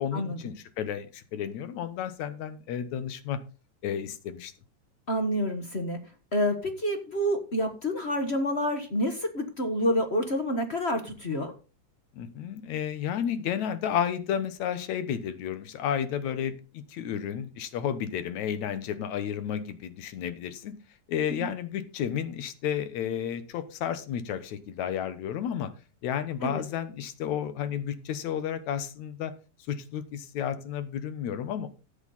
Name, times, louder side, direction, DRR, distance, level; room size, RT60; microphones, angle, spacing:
voice 1, 0.0-3.4 3.8-4.5 12.1-20.7 21.1-25.7 26.0-29.3 29.7-31.7, left 9 dB, 75° left, 12 dB, 2.3 m, -32 dB
voice 2, 5.1-6.0 6.3-11.5 21.4-21.5 26.4-26.6, equal, 40° left, 6 dB, 0.9 m, -28 dB
13.0 x 8.5 x 4.1 m, 0.33 s
omnidirectional pair, 3.4 m